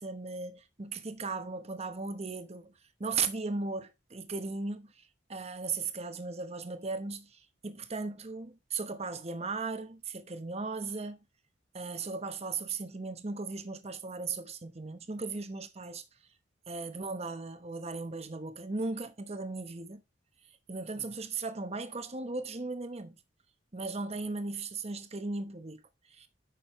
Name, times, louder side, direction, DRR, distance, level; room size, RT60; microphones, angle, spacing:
voice 1, 0.0-2.7 3.0-11.2 11.7-16.0 16.7-20.0 20.7-23.2 23.7-25.8 26.1-26.3, right 4 dB, 35° right, 1.0 m, -37 dB
9.1 x 6.3 x 3.1 m
head